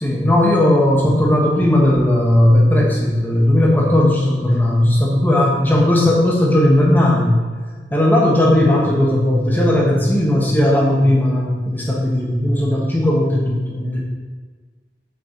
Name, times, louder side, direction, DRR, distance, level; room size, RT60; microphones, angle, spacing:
voice 1, 0.0-7.4 7.9-14.0, left 1 dB, 10° left, -3 dB, 1.3 m, -16 dB
7.8 x 6.9 x 3.9 m, 1.5 s
head